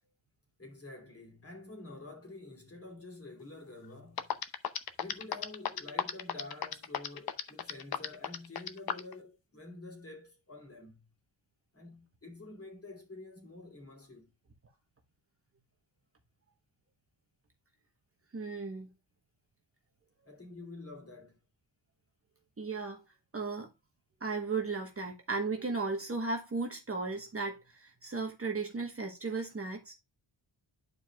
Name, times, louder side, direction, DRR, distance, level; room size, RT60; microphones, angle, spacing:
voice 1, 0.6-4.4 5.0-11.0 11.7-14.3 20.3-21.4, left 2 dB, 30° left, 2.7 m, -48 dB
sound 1, 3.8-3.9 4.2-9.1, left 8 dB, 50° left, 0.7 m, -33 dB
voice 2, 18.3-18.9 22.6-23.0 23.3-23.7 24.2-29.9, right 4 dB, 30° right, 1.1 m, -35 dB
11.0 x 4.7 x 2.3 m
wide cardioid pair, 140°, 47 cm